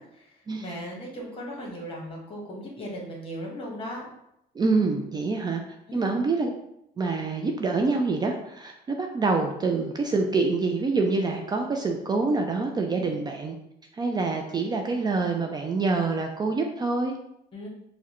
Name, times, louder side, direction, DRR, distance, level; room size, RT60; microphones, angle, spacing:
voice 1, 0.0-4.1 5.9-6.1 13.0-13.2 17.5-17.7, equal, 35° left, -1 dB, 1.1 m, -38 dB
voice 2, 4.6-5.6 5.9-6.5 7.0-13.6 13.9-17.2, right 3 dB, 25° right, 2 dB, 0.3 m, -26 dB
4.5 x 2.1 x 2.9 m, 0.80 s
cardioid pair, 110°, 17 cm